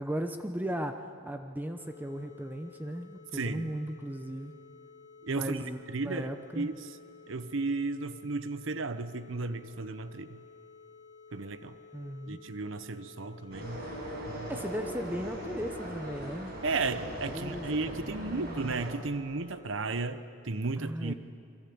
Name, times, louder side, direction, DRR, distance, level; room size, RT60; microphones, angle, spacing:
voice 1, 0.0-4.6 5.3-6.7 11.9-12.4 14.5-16.5 17.3-18.8 20.8-21.1, equal, 10° right, 6 dB, 0.9 m, -37 dB
sound 1, 1.8-20.2, left 5 dB, 40° left, 4.4 m, -54 dB
voice 2, 3.3-3.7 5.2-6.3 6.5-7.0 7.3-10.4 11.3-11.8 12.3-13.9 14.3-14.5 16.6-21.1, right 3 dB, 65° right, 12 dB, 0.9 m, -34 dB
sound 2, 13.5-18.9, right 1 dB, 50° right, 7.1 m, -40 dB
29.5 x 22.5 x 8.7 m, 2.5 s
head